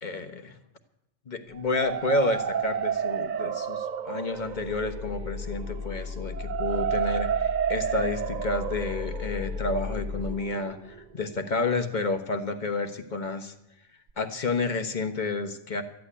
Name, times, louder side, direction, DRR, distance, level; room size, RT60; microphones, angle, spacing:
voice 1, 0.0-0.6 1.3-13.5 14.2-15.8, left 3 dB, 40° left, 6 dB, 1.3 m, -30 dB
sound 1, 1.5-11.4, right 8 dB, 45° right, 0.7 m, -32 dB
sound 2, 4.3-10.3, left 5 dB, 85° left, 5.2 m, -36 dB
13.5 x 8.5 x 9.9 m, 0.83 s
omnidirectional pair, 1.2 m